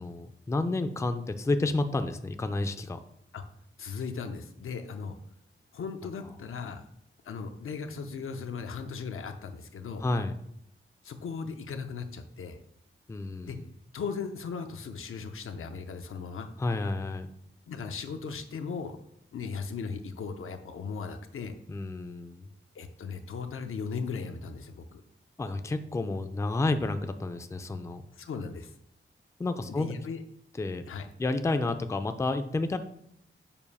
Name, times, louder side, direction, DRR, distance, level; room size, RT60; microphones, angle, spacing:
voice 1, 0.0-3.0 10.0-10.4 13.1-13.7 16.6-17.3 21.7-22.4 25.4-28.0 29.4-29.9 30.6-30.8 31.2-32.8, left 2 dB, 15° left, 9 dB, 0.3 m, -30 dB
voice 2, 3.8-5.2 5.7-6.8 7.2-10.0 11.0-12.6 13.4-13.6 13.9-16.5 17.7-19.0 19.3-21.5 22.7-25.0 28.2-28.7 29.7-30.2 30.9-31.1, left 5 dB, 80° left, 6 dB, 0.6 m, -37 dB
6.9 x 2.5 x 5.4 m, 0.76 s
wide cardioid pair, 125°, 21 cm